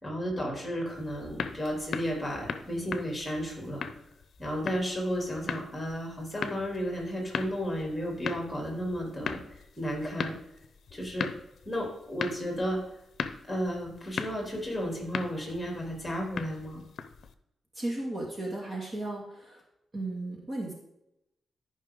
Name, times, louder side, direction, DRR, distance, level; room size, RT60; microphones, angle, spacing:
voice 1, 0.0-3.8 4.4-10.3 10.9-11.3 11.6-12.8 13.5-16.8, equal, 10° left, 0 dB, 3.1 m, -33 dB
sound 1, 0.9-17.3, left 6 dB, 65° left, 0.7 m, -39 dB
voice 2, 17.7-19.6 19.9-20.7, right 2 dB, 35° right, -1 dB, 2.3 m, -35 dB
13.5 x 5.6 x 3.8 m, 0.85 s
wide cardioid pair, 120°, 0 cm